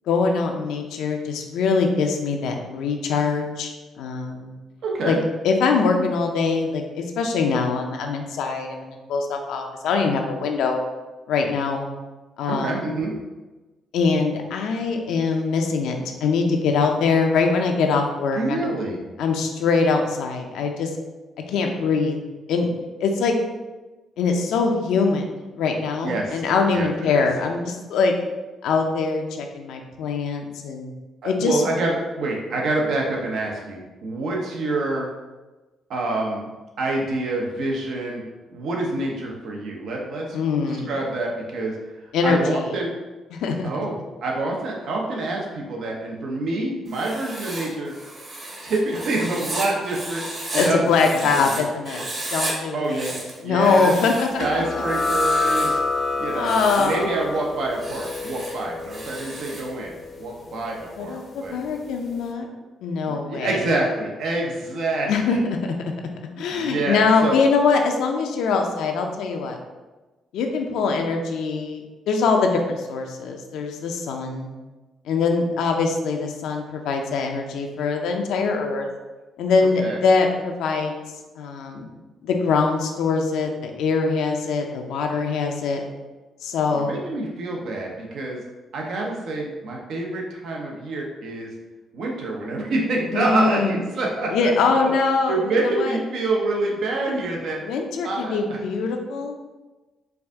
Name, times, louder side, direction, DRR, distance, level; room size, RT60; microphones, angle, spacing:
voice 1, 0.1-4.5 5.0-5.2 5.4-10.8 11.3-11.9 12.4-12.8 13.9-18.6 19.2-20.9 21.5-22.2 22.5-22.7 23.0-23.4 24.2-25.3 25.6-28.1 28.6-30.9 31.2-31.6 40.3-40.9 42.1-42.7 43.3-43.7 50.5-52.0 52.3-53.1 53.4-54.6 56.3-57.2 61.0-62.5 62.8-63.6 65.1-65.4 66.4-69.6 70.3-74.5 75.1-78.9 79.4-81.0 81.4-81.9 82.2-85.8 86.4-86.9 93.1-93.8 94.3-95.4 95.8-95.9 97.6-99.4, left 4 dB, 85° left, 3 dB, 0.6 m, -23 dB
voice 2, 4.8-5.2 12.5-13.2 18.3-19.0 26.0-26.4 26.7-27.3 31.2-35.1 35.9-36.5 36.8-38.2 38.5-40.4 40.7-41.7 42.2-42.9 43.6-43.9 44.2-47.9 48.6-50.3 50.5-50.9 51.3-51.6 52.7-53.9 54.4-55.8 56.2-61.6 63.1-65.4 66.5-67.4 79.8-80.0 86.7-88.4 88.7-91.5 91.9-94.5 94.8-94.9 95.3-97.6 98.0-98.6, right 2 dB, 70° right, -1 dB, 0.9 m, -27 dB
Writing, 46.9-51.6 51.8-52.5 52.8-54.4 54.8-55.8 56.3-57.0 57.7-59.7, right 2 dB, 40° right, 1.3 m, -33 dB
sound 1, 54.4-61.6, left 3 dB, 45° left, 0.6 m, -28 dB
4.7 x 2.6 x 3.6 m, 1.2 s
cardioid pair, 90°, 0 cm